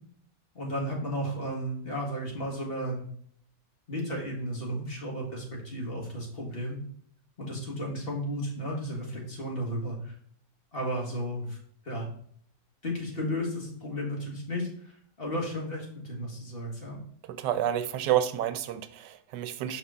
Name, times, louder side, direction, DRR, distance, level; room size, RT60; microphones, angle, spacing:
voice 1, 0.5-3.0 3.9-6.8 7.4-10.1 10.7-11.6 11.8-12.1 12.8-17.0, equal, 35° left, -2 dB, 1.7 m, -34 dB
voice 2, 17.3-19.8, right 11 dB, 90° right, 11 dB, 1.2 m, -29 dB
5.6 x 5.2 x 3.5 m, 0.62 s
omnidirectional pair, 1.8 m